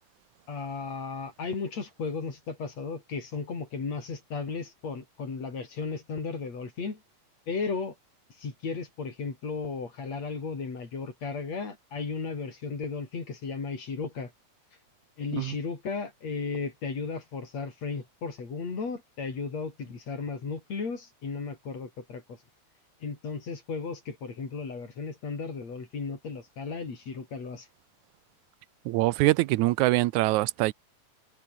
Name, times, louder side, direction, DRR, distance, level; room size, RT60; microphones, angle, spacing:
voice 1, 0.5-7.0 7.5-8.0 8.4-14.3 15.2-22.4 23.0-27.7, left 4 dB, 65° left, 5.9 m, -35 dB
voice 2, 28.9-30.7, right 19 dB, 85° right, 2.0 m, -24 dB
omnidirectional pair, 3.3 m